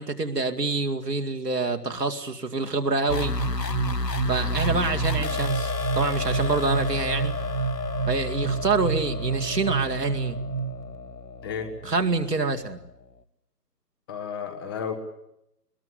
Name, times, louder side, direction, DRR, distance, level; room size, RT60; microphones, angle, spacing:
voice 1, 0.0-3.3 4.3-7.4 8.1-10.4 11.8-12.8, right 3 dB, 75° right, 4 dB, 2.4 m, -26 dB
sound 1, 3.1-12.7, left 3 dB, 85° left, 1.4 m, -31 dB
sound 2, 3.4-10.9, right 6 dB, 35° right, 2.0 m, -30 dB
voice 2, 14.1-14.9, left 7 dB, 15° left, 6 dB, 1.3 m, -32 dB
21.5 x 21.0 x 9.9 m, 0.80 s
figure-of-eight pair, 145°, 48 cm